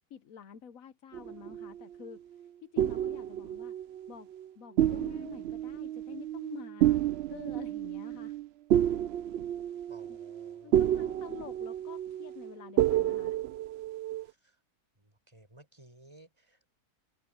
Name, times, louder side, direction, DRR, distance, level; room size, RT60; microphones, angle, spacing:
voice 1, 0.1-3.7 4.1-4.3 4.6-7.0 7.3-8.4 10.1-10.2 10.6-13.4, left 9 dB, 65° left, 1.2 m, -48 dB
sound 1, 1.1-2.2 2.8-4.5 4.8-14.3, right 12 dB, 85° right, 0.5 m, -30 dB
voice 2, 9.9-11.2 14.2-14.6 15.0-16.7, right 1 dB, 20° right, 5.5 m, -57 dB
open air
omnidirectional pair, 1.6 m